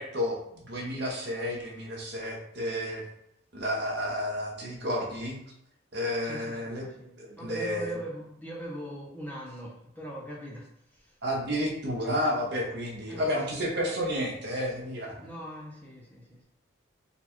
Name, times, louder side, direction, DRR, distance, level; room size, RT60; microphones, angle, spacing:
voice 1, 0.0-3.0 3.5-5.4 5.9-6.9 7.2-7.9 11.2-15.1, equal, 55° right, -1 dB, 0.9 m, -31 dB
voice 2, 6.2-11.2 13.1-13.7 15.2-16.4, equal, 10° left, -3 dB, 0.6 m, -40 dB
4.0 x 2.3 x 4.4 m, 0.74 s
head